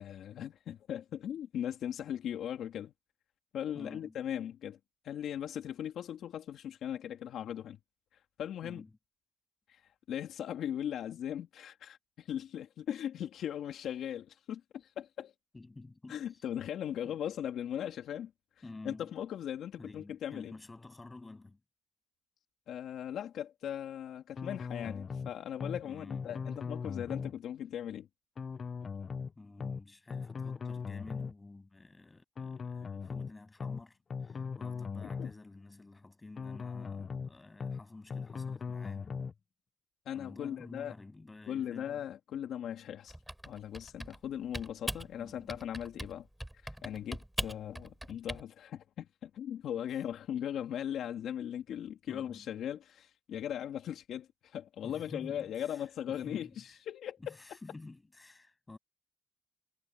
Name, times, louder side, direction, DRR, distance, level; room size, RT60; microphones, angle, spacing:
voice 1, 0.0-2.9 3.5-4.8 5.0-7.8 8.4-8.8 9.7-9.8 10.1-15.3 16.1-18.3 18.8-20.5 22.7-28.1 35.2-35.3 40.1-40.9 41.5-43.1 43.5-46.3 46.6-57.3, left 10 dB, 75° left, 2.8 m, -39 dB
voice 2, 3.7-4.2 8.6-8.9 15.5-16.3 17.0-17.2 18.6-19.2 19.8-21.6 25.8-26.4 29.4-39.2 40.1-42.1 45.2-45.6 52.1-52.5 54.8-55.8 56.1-56.7 57.2-58.8, left 2 dB, 20° left, 7.2 m, -51 dB
sound 1, 24.4-25.3 25.6-25.8 26.1-27.3 28.4-29.3 29.6-29.8 30.1-31.3 32.4-33.3 33.6-33.8 34.1-35.3 36.4-37.3 37.6-37.8 38.1-39.3, left 5 dB, 40° left, 0.4 m, -39 dB
Typing, 43.1-44.3 44.5-45.1 45.5-46.1 46.4-48.4, right 1 dB, 5° right, 3.3 m, -40 dB
cardioid pair, 90°, 0 cm